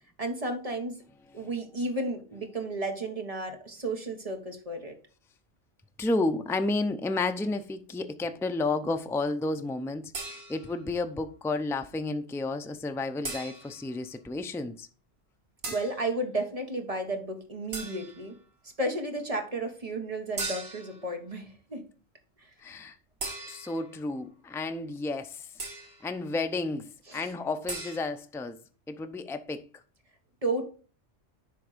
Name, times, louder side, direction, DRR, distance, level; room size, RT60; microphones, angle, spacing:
voice 1, 0.2-1.0 1.3-4.9 15.6-18.4 18.8-21.9 22.4-22.5 27.1-27.3 30.4-30.7, right 2 dB, 30° right, 1.5 m, -33 dB
voice 2, 6.0-14.9 22.6-23.0 23.5-25.5 26.0-28.6 28.9-29.8, left 2 dB, 5° left, 0.4 m, -31 dB
sound 1, 10.1-10.8 13.2-13.9 15.6-16.0 17.7-18.3 20.4-21.0 23.2-23.9 25.6-26.1 27.7-28.0, right 3 dB, 60° right, 1.9 m, -38 dB
10.5 x 3.5 x 5.0 m
omnidirectional pair, 1.2 m